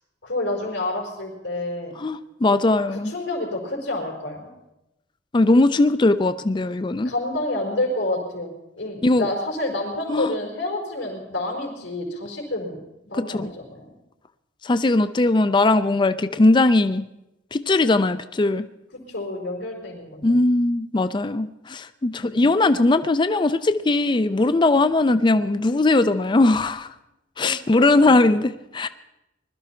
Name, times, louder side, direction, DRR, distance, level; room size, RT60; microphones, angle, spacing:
voice 1, 0.2-1.9 2.9-4.5 7.0-8.5 8.8-13.9 18.9-20.4 22.2-22.4 27.4-27.5 27.8-28.2, left 1 dB, 85° left, -4 dB, 4.5 m, -29 dB
voice 2, 2.0-3.1 5.3-7.1 9.0-9.3 10.1-10.3 13.3-13.5 14.6-17.0 17.5-18.6 20.2-26.9 27.4-28.9, left 2 dB, 25° left, 12 dB, 0.4 m, -19 dB
20.5 x 12.5 x 4.4 m, 0.92 s
head